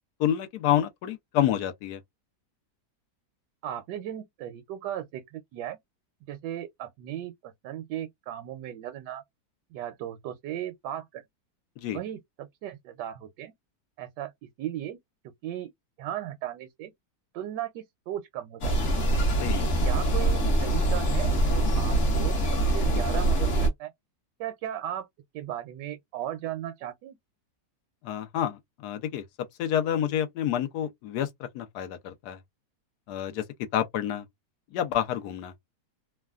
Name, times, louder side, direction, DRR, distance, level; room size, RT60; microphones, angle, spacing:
voice 1, 0.2-2.0 11.8-12.0 19.4-19.7 28.0-29.2 29.6-32.4 33.1-33.4 33.7-34.2 34.7-35.5, left 10 dB, 75° left, 1.1 m, -28 dB
voice 2, 3.6-5.8 6.3-9.2 9.7-11.2 11.8-13.5 14.0-15.0 15.4-15.7 16.0-16.9 17.3-19.0 19.8-23.9 24.4-25.1 25.3-27.2, right 11 dB, 80° right, 1.2 m, -36 dB
sound 1, 18.6-23.7, right 1 dB, 50° left, 1.2 m, -24 dB
3.2 x 2.2 x 2.3 m
omnidirectional pair, 1.8 m